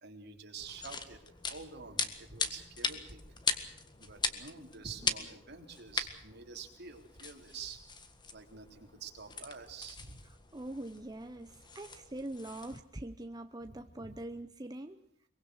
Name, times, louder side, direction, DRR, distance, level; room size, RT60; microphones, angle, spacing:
voice 1, 0.0-1.2 1.5-3.4 4.0-7.8 8.3-10.2 13.6-14.2, right 5 dB, 60° right, 3 dB, 3.6 m, -48 dB
sound 1, 0.6-12.8, left 4 dB, 25° left, 1.7 m, -40 dB
voice 2, 10.5-15.3, right 1 dB, 20° right, 7 dB, 0.9 m, -43 dB
23.0 x 22.5 x 6.4 m, 0.71 s
head